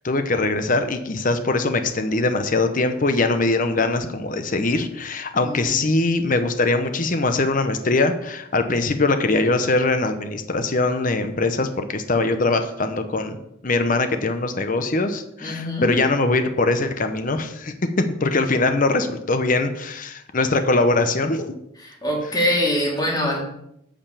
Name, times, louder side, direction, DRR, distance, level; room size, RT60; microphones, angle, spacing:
voice 1, 0.0-13.4 13.6-21.5, left 2 dB, 40° left, 8 dB, 0.8 m, -22 dB
voice 2, 5.4-5.8 15.4-15.9 21.8-23.4, left 1 dB, 20° left, -2 dB, 2.6 m, -24 dB
8.8 x 5.2 x 6.9 m, 0.78 s
head